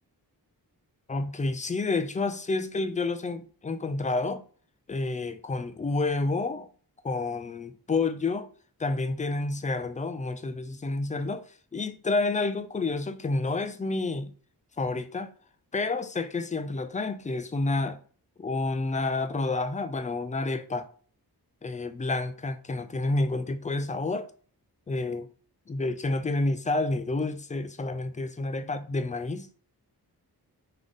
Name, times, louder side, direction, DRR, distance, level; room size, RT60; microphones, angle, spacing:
voice 1, 1.1-4.4 4.9-6.7 7.0-8.5 8.8-11.4 11.7-14.3 14.8-15.3 15.7-18.0 18.4-20.9 21.6-24.3 24.9-25.3 25.7-29.5, left 3 dB, 20° left, 0.4 m, -29 dB
3.6 x 3.2 x 3.8 m
wide cardioid pair, 105°, 39 cm